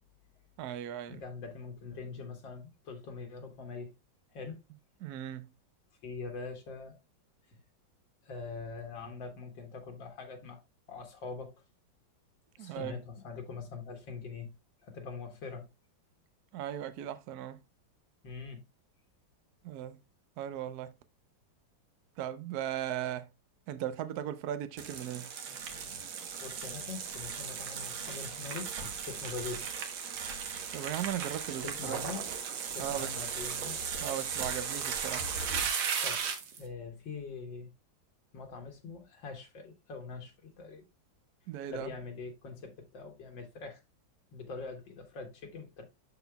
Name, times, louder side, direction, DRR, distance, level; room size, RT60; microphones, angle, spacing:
voice 1, 0.6-1.2 5.0-5.5 12.6-13.0 16.5-17.6 19.6-20.0 20.4-20.9 22.2-23.3 23.7-25.3 30.7-32.0 32.8-33.1 34.0-35.3 41.5-41.9, right 11 dB, 65° right, 1.0 m, -37 dB
voice 2, 1.1-3.9 4.3-4.6 6.0-7.0 8.2-10.6 10.9-11.5 12.6-14.6 14.8-15.7 18.2-18.6 26.4-29.7 31.6-32.3 32.7-33.8 36.0-36.3 36.6-37.7 38.3-40.8 41.7-43.8 44.3-45.8, left 4 dB, 70° left, 1.8 m, -43 dB
sound 1, 24.8-36.6, right 6 dB, 85° right, 2.0 m, -36 dB
12.0 x 4.1 x 2.3 m
omnidirectional pair, 2.2 m